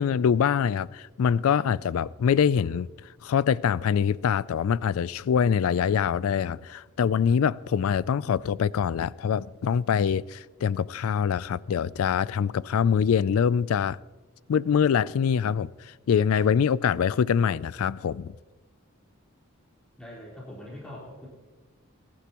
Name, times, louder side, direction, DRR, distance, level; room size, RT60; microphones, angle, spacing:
voice 1, 0.0-2.9 3.2-14.0 14.5-15.7 16.1-18.3, left 7 dB, 75° left, 0.3 m, -24 dB
voice 2, 20.0-21.3, left 1 dB, 5° left, 3.9 m, -42 dB
21.5 x 11.5 x 3.0 m
head